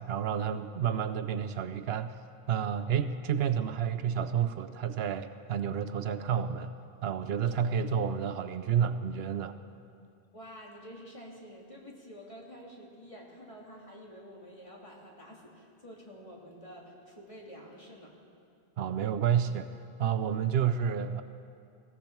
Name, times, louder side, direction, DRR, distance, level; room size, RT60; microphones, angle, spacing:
voice 1, 0.0-2.2 2.5-6.7 7.0-9.6 18.8-21.2, right 8 dB, 75° right, 11 dB, 0.8 m, -30 dB
voice 2, 10.3-18.1, equal, 30° left, -2 dB, 2.2 m, -49 dB
19.5 x 15.5 x 4.5 m, 2.5 s
omnidirectional pair, 1.1 m